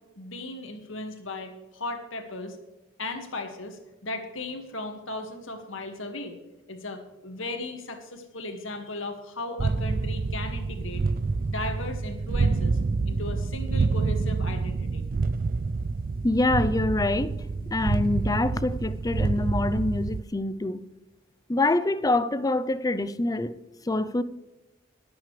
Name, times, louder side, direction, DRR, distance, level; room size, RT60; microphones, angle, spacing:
voice 1, 0.2-2.6 3.0-6.4 6.7-11.0 11.5-12.8 13.1-15.0, left 2 dB, 75° left, 2.0 m, -36 dB
sound 1, 9.6-20.2, right 3 dB, 45° right, 0.4 m, -27 dB
voice 2, 16.2-17.3 17.7-20.8 21.5-23.5 23.9-24.2, left 2 dB, 20° left, 0.6 m, -25 dB
22.0 x 9.0 x 3.3 m
head